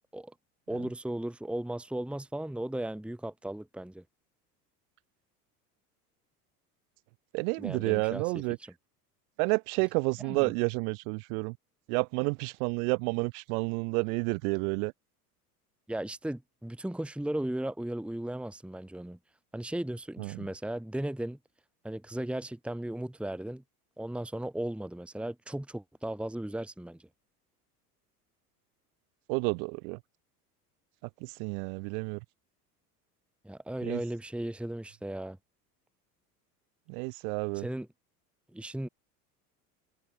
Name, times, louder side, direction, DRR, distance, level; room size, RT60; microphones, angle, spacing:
voice 1, 0.7-4.0 7.6-8.2 10.2-10.5 15.9-19.2 19.5-21.4 21.8-23.6 24.0-27.0 33.4-35.4 37.5-37.9 38.5-38.9, right 1 dB, ahead, 1.8 m, -36 dB
voice 2, 7.3-8.6 9.4-11.6 11.9-14.9 20.2-20.5 29.3-30.0 31.2-32.2 33.8-34.0 36.9-37.6, right 33 dB, 60° right, 4.9 m, -30 dB
hypercardioid pair, 75°, 47 cm